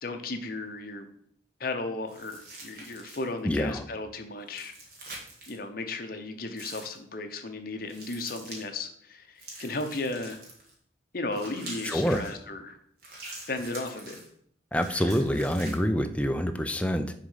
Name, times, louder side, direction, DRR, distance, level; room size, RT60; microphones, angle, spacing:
voice 1, 0.0-1.1 1.6-4.7 5.5-10.4 11.1-12.8 13.5-14.2, left 2 dB, 50° left, 6 dB, 0.8 m, -35 dB
sound 1, 2.1-3.4 4.5-5.6 6.5-7.0 7.9-8.6 9.4-10.7 11.3-12.3 13.0-14.3 14.7-15.8, right 2 dB, 50° right, 1.8 m, -44 dB
voice 2, 3.4-3.8 11.8-12.2 14.7-17.1, equal, 5° left, 7 dB, 0.4 m, -26 dB
6.4 x 3.7 x 5.5 m, 0.66 s
head